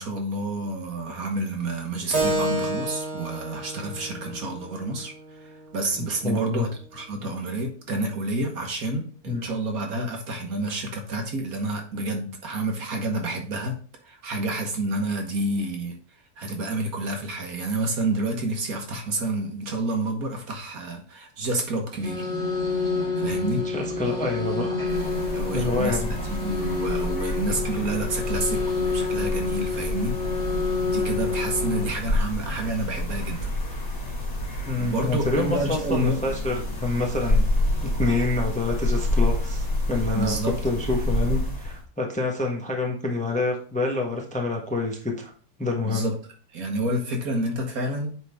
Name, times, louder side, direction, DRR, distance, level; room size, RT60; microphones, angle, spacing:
voice 1, 0.0-13.8 14.0-16.0 16.4-22.3 23.2-23.6 25.3-30.1 30.9-33.5 34.8-36.2 40.1-40.6 45.8-46.1 46.5-48.1, right 2 dB, 60° right, 2 dB, 1.7 m, -29 dB
Keyboard (musical), 2.1-7.2, right 1 dB, 75° right, 2.7 m, -31 dB
voice 2, 6.0-6.7 9.3-9.5 23.6-24.8 25.5-26.2 34.7-37.4 37.8-40.4 40.6-45.3 45.6-46.1, left 3 dB, 5° left, 1 dB, 1.0 m, -27 dB
sound 1, 21.9-31.9, left 4 dB, 45° right, 3.2 m, -28 dB
sound 2, 24.8-41.8, left 1 dB, 65° left, 2.7 m, -28 dB
9.0 x 3.9 x 3.5 m, 0.41 s
omnidirectional pair, 1.8 m